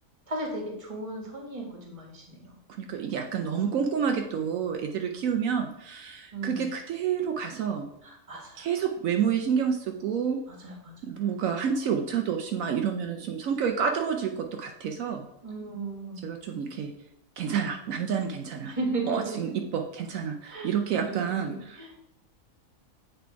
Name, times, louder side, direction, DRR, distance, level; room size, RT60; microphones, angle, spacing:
voice 1, 0.3-2.6 6.3-6.7 8.0-8.7 10.6-11.1 15.4-16.2 18.6-19.5 20.5-21.4 21.8-21.9, right 2 dB, 25° right, 0 dB, 1.3 m, -35 dB
voice 2, 2.8-7.9 8.6-10.4 11.0-15.3 16.2-16.9 17.4-18.7 19.1-22.0, right 7 dB, 75° right, 4 dB, 1.0 m, -29 dB
7.6 x 3.3 x 4.5 m, 0.78 s
omnidirectional pair, 1.4 m